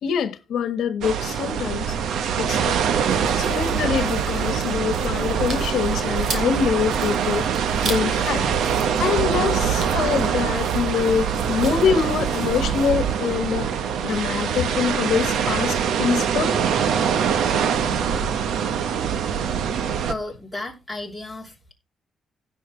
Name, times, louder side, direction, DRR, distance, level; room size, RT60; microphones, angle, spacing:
voice 1, 0.0-1.9 2.4-2.7 3.3-7.5 7.8-8.4 9.0-13.7 14.0-16.6 17.8-18.4, left 7 dB, 75° left, 1.2 m, -25 dB
sound 1, 1.0-20.1, right 7 dB, 85° right, 1.0 m, -24 dB
sound 2, 3.1-13.0, right 6 dB, 45° right, 2.8 m, -32 dB
voice 2, 20.1-21.7, left 2 dB, ahead, 3.1 m, -33 dB
16.5 x 6.0 x 3.2 m
cardioid pair, 155°, 0 cm